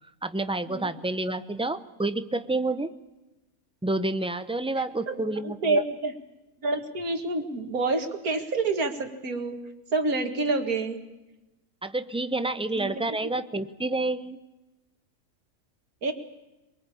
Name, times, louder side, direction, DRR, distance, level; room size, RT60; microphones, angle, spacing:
voice 1, 0.2-2.9 3.8-5.8 11.8-14.4, right 2 dB, 5° right, 11 dB, 0.5 m, -29 dB
voice 2, 5.1-6.1 6.6-9.6 9.9-11.0 12.8-13.0 16.0-16.1, right 3 dB, 90° right, 5 dB, 2.5 m, -28 dB
24.0 x 22.5 x 8.5 m, 1.0 s
omnidirectional pair, 1.5 m